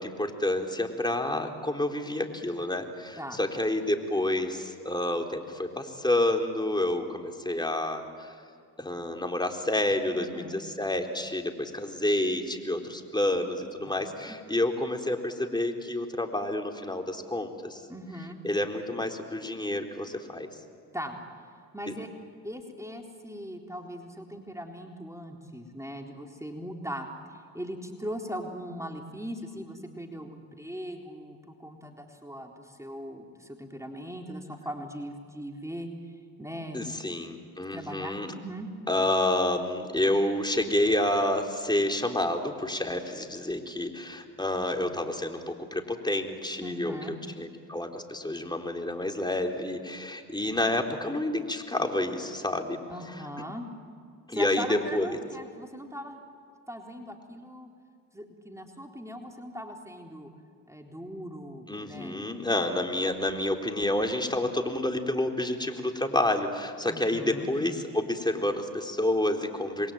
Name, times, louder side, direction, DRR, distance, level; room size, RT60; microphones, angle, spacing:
voice 1, 0.0-8.4 8.8-17.8 18.4-20.5 21.9-22.0 36.7-38.3 38.9-52.8 54.3-55.2 61.7-69.9, left 1 dB, 10° left, 3 dB, 4.1 m, -29 dB
voice 2, 10.1-10.6 14.3-14.4 17.9-18.4 20.9-21.2 21.7-22.1 22.4-27.1 27.5-35.9 36.4-37.0 37.7-38.7 46.6-47.2 52.9-53.7 54.3-56.2 56.7-57.7 58.1-60.3 60.7-62.3 66.9-67.5, equal, 5° right, 2 dB, 3.8 m, -39 dB
28.5 x 22.5 x 9.2 m, 2.2 s
hypercardioid pair, 45°, 43 cm